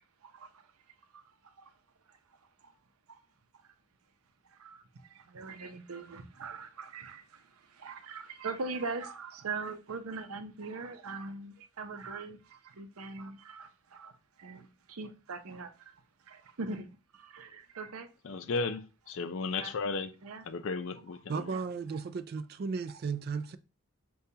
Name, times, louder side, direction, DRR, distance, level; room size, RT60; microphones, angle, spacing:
voice 1, 5.3-7.2 7.8-12.4 12.8-14.1 14.4-15.7 16.3-16.9 17.3-18.1 19.6-19.8 20.2-20.4 21.5-21.6, right 3 dB, 85° right, 0.6 m, -40 dB
voice 2, 18.2-20.1 20.4-21.5, left 4 dB, 65° left, 0.4 m, -34 dB
voice 3, 21.3-23.6, right 5 dB, 45° right, 0.3 m, -35 dB
6.7 x 2.3 x 2.8 m
head